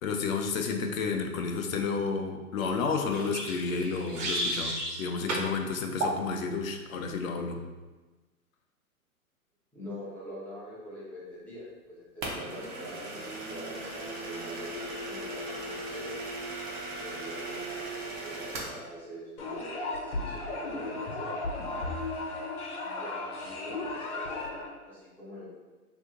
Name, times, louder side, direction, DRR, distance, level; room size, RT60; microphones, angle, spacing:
voice 1, 0.0-7.6, left 4 dB, 65° left, 4 dB, 0.6 m, -31 dB
sound 1, 3.1-5.0 5.3-5.5 6.0-6.2, right 1 dB, 55° right, 1.1 m, -32 dB
voice 2, 9.7-16.1 16.9-21.4 22.8-25.5, equal, 5° left, -9 dB, 0.7 m, -44 dB
sound 2, 12.2-18.8, right 2 dB, 35° right, 0.8 m, -38 dB
sound 3, 19.4-24.7, left 2 dB, 80° left, 1.0 m, -35 dB
2.8 x 2.6 x 3.6 m, 1.2 s
hypercardioid pair, 130°, 44 cm